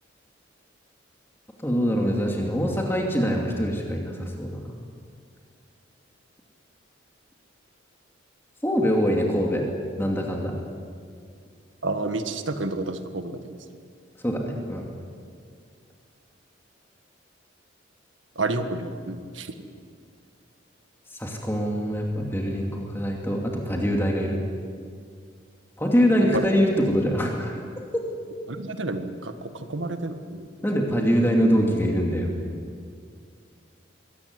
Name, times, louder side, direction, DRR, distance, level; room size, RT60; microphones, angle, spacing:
voice 1, 1.6-4.6 8.6-9.6 10.0-10.5 14.2-14.9 21.2-24.4 25.8-27.6 30.6-32.3, equal, 10° left, 0 dB, 2.6 m, -24 dB
voice 2, 11.8-13.4 18.4-19.5 28.5-30.5, right 2 dB, 80° right, 8 dB, 1.7 m, -30 dB
22.5 x 17.5 x 9.7 m, 2.2 s
head